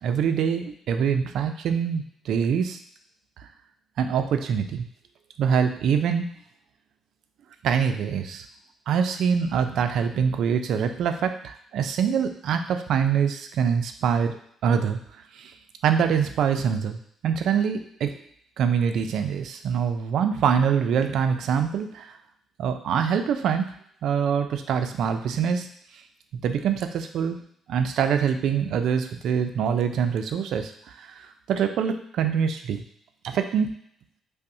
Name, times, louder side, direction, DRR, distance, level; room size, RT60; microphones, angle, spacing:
voice 1, 0.0-2.8 3.4-3.5 4.0-4.9 5.4-6.3 7.6-8.5 8.9-14.4 14.6-15.0 15.3-15.5 15.8-18.1 18.6-22.1 22.6-23.7 24.0-25.7 26.4-27.4 27.7-32.8 33.2-33.7, right 7 dB, 65° right, 7 dB, 0.3 m, -24 dB
5.3 x 2.0 x 2.6 m, 0.66 s
cardioid pair, 165°, 0 cm